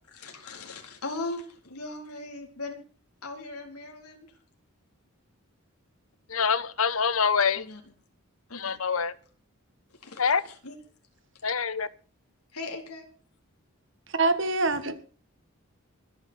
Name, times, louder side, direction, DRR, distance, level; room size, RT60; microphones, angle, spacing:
voice 1, 0.2-2.8 3.2-4.3 7.5-7.8 8.5-8.8 10.0-10.7 12.5-13.1, left 2 dB, 90° left, 2 dB, 4.2 m, -39 dB
voice 2, 6.3-7.7 8.5-9.1 10.2-10.4 11.4-11.9, left 6 dB, 70° left, 15 dB, 1.1 m, -25 dB
voice 3, 14.1-15.0, right 3 dB, 55° right, 11 dB, 1.8 m, -25 dB
25.5 x 9.7 x 4.6 m, 0.40 s
head